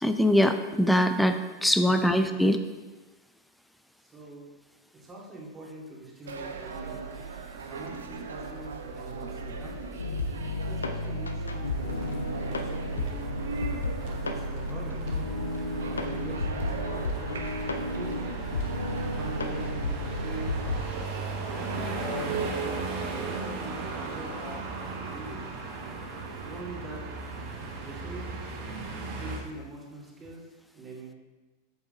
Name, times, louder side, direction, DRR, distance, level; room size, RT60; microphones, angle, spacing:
voice 1, 0.0-2.6, equal, ahead, 8 dB, 0.5 m, -23 dB
voice 2, 1.8-2.4 4.0-4.5 4.9-7.0 7.7-10.0 10.7-13.3 14.1-15.1 15.9-18.2 19.1-20.9 21.9-25.5 26.4-27.0 27.8-28.3 29.2-30.5 30.7-31.1, right 2 dB, 20° right, -4 dB, 2.5 m, -43 dB
sound 1, 6.2-19.7, right 4 dB, 65° right, 0.8 m, -40 dB
sound 2, 10.0-20.8, left 1 dB, 75° left, 0.7 m, -32 dB
sound 3, 11.7-29.4, right 3 dB, 45° right, 1.5 m, -37 dB
8.0 x 7.2 x 3.8 m, 1.2 s
figure-of-eight pair, 90°, 0 cm